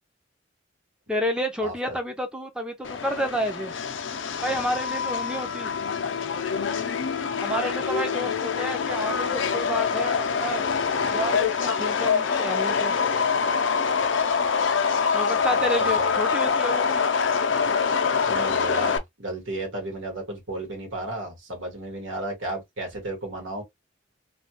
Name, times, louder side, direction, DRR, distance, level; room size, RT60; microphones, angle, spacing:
voice 1, 1.1-3.7 4.4-5.7 7.4-10.6 11.1-13.0 15.1-17.1, equal, 5° right, 0.6 m, -30 dB
voice 2, 1.6-2.0 8.2-8.3 15.3-16.1 18.3-23.6, right 2 dB, 85° right, 1.7 m, -34 dB
Subway metro underground, 2.8-19.0, left 6 dB, 80° left, 0.6 m, -25 dB
3.2 x 2.3 x 2.8 m
head